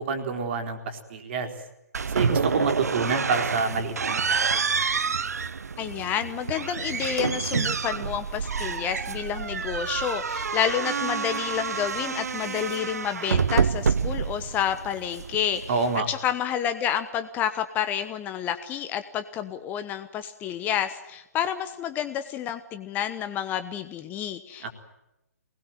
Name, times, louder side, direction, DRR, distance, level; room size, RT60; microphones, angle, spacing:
voice 1, 0.0-1.5 2.1-4.6 14.4-14.5 15.7-16.1 24.6-24.7, right 4 dB, 40° right, 5 dB, 4.1 m, -28 dB
sound 1, 1.9-16.0, right 5 dB, 70° right, 0.8 m, -28 dB
voice 2, 5.8-15.6 16.1-24.7, left 9 dB, 20° left, 10 dB, 1.2 m, -29 dB
24.0 x 20.0 x 9.3 m, 0.91 s
figure-of-eight pair, 130°, 9 cm